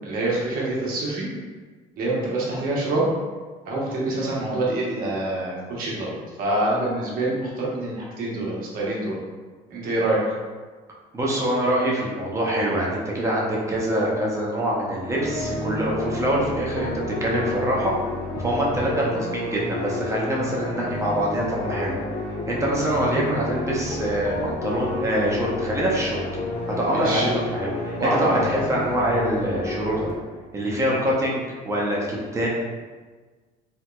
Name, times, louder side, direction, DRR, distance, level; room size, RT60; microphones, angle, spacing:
voice 1, 0.0-1.3 2.0-3.0 3.7-9.2 9.7-10.2 26.9-27.3 28.0-28.5, right 2 dB, 65° right, -4 dB, 0.9 m, -25 dB
voice 2, 11.1-16.9 17.2-17.9 18.4-21.9 22.5-26.2 26.8-30.1 30.5-32.5, right 1 dB, 20° right, -4 dB, 0.6 m, -24 dB
sound 1, 15.1-30.1, left 2 dB, 50° left, 0.6 m, -31 dB
3.0 x 2.9 x 2.2 m, 1.4 s
cardioid pair, 140°, 16 cm